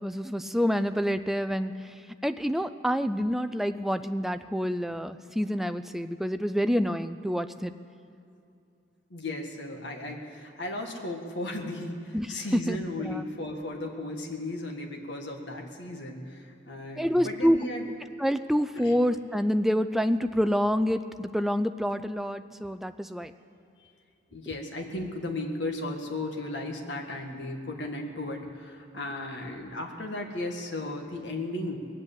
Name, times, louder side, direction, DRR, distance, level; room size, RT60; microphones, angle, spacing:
voice 1, 0.0-1.9 2.2-7.7 12.1-13.2 17.0-17.6 18.2-23.3, equal, ahead, 10 dB, 0.4 m, -27 dB
voice 2, 9.1-17.9 18.7-18.9 24.3-31.8, left 2 dB, 65° left, 2 dB, 1.8 m, -35 dB
20.5 x 8.0 x 8.4 m, 2.6 s
head